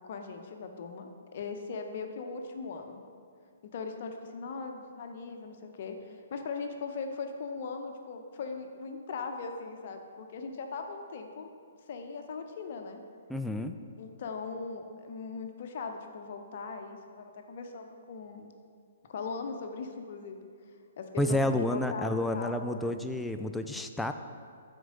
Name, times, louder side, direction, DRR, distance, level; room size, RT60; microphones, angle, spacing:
voice 1, 0.0-3.0 3.6-11.5 11.9-13.0 14.0-18.5 19.1-20.5 21.0-23.0, left 4 dB, 55° left, 5 dB, 0.7 m, -39 dB
voice 2, 13.3-13.7 21.2-24.1, left 1 dB, 5° left, 6 dB, 0.3 m, -30 dB
6.2 x 4.5 x 5.1 m, 2.2 s
hypercardioid pair, 130°, 0 cm